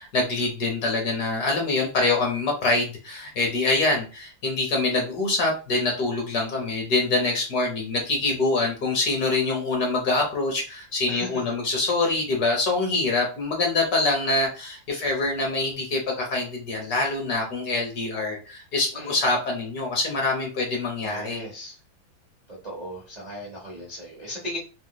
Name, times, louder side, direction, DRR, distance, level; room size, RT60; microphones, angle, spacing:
voice 1, 0.0-21.4, left 3 dB, 65° left, 1 dB, 1.2 m, -25 dB
voice 2, 11.1-11.5 18.9-19.3 21.0-21.8 22.5-24.6, equal, 45° right, -5 dB, 0.5 m, -37 dB
3.3 x 2.9 x 2.2 m, 0.34 s
omnidirectional pair, 2.1 m